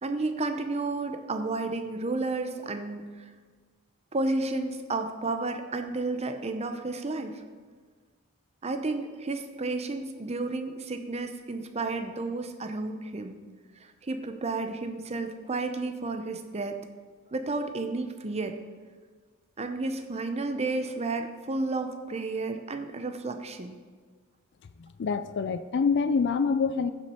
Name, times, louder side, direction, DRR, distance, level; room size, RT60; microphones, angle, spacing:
voice 1, 0.0-3.2 4.1-7.3 8.6-13.4 14.0-16.8 17.3-18.6 19.6-23.8, right 3 dB, 30° right, 7 dB, 0.6 m, -32 dB
voice 2, 24.8-26.9, left 5 dB, 50° left, 11 dB, 0.4 m, -26 dB
15.0 x 6.1 x 4.3 m, 1.5 s
head